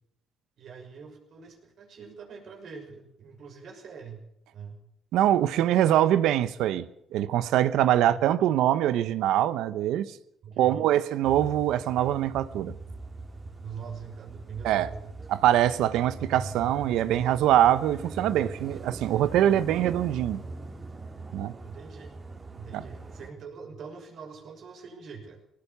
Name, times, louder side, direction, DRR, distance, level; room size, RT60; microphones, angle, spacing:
voice 1, 0.6-4.2 4.5-4.8 8.0-8.2 10.4-10.9 13.6-15.1 21.6-22.1 22.5-25.4, right 6 dB, 65° right, 6.1 m, -43 dB
voice 2, 5.1-10.2 10.6-12.7 14.6-14.9 15.3-20.4 21.3-21.5 22.7-22.8, right 12 dB, 90° right, 1.0 m, -23 dB
sound 1, 11.2-23.3, right 3 dB, 30° right, 3.7 m, -41 dB
20.5 x 19.0 x 6.9 m
cardioid pair, 90°, 0 cm